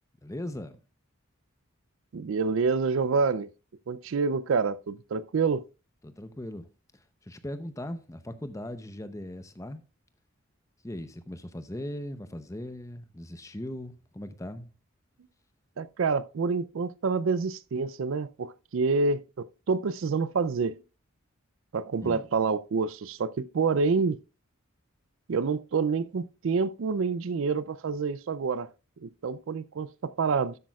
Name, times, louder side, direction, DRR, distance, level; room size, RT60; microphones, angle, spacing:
voice 1, 0.2-0.8 6.0-6.7 7.2-9.8 10.8-14.7 22.0-22.3, left 1 dB, 15° left, 0.6 m, -39 dB
voice 2, 2.1-3.5 3.9-5.6 15.8-20.8 21.7-24.2 25.3-28.7 29.0-30.6, right 4 dB, 65° right, 0.4 m, -27 dB
12.5 x 8.3 x 2.3 m
head